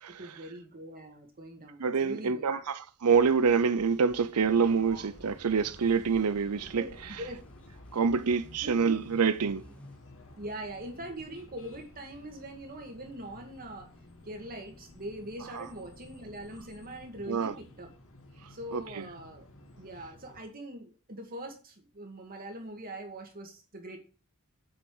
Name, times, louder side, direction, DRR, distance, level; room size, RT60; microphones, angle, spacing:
voice 1, 0.2-2.6 4.8-5.1 6.7-6.9 7.2-7.4 8.6-8.8 10.4-13.9 14.2-17.9 18.5-19.5 19.8-24.0, right 1 dB, 40° right, 2.0 m, -42 dB
voice 2, 1.8-7.2 7.9-9.7 15.6-15.7 17.3-17.5 18.7-19.1, right 5 dB, 85° right, 0.6 m, -26 dB
sound 1, 3.1-10.0, equal, 5° left, 1.1 m, -54 dB
sound 2, 4.3-20.4, left 1 dB, 65° left, 1.8 m, -53 dB
sound 3, 10.1-17.0, left 2 dB, 30° left, 2.2 m, -60 dB
8.2 x 6.0 x 7.2 m
head